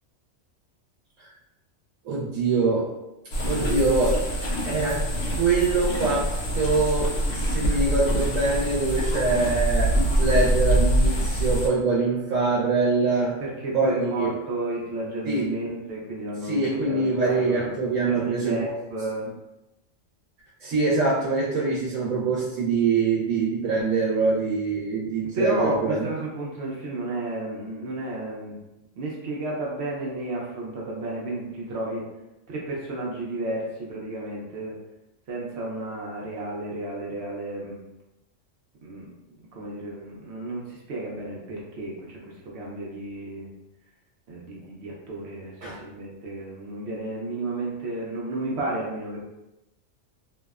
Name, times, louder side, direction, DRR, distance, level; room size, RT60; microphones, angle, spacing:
voice 1, 2.0-2.9 3.4-4.1 4.7-13.4 13.7-14.3 15.2-15.6 16.4-18.6 20.6-26.0 45.6-45.8, right 3 dB, 90° right, -6 dB, 1.0 m, -24 dB
sound 1, 3.3-11.7, right 1 dB, 75° left, 0.9 m, -24 dB
voice 2, 13.4-19.3 25.3-28.7 29.0-32.1 32.5-34.7 35.3-37.8 38.8-43.5 44.3-49.2, right 2 dB, 65° right, -3 dB, 0.8 m, -32 dB
2.7 x 2.0 x 2.3 m, 0.95 s
omnidirectional pair, 1.3 m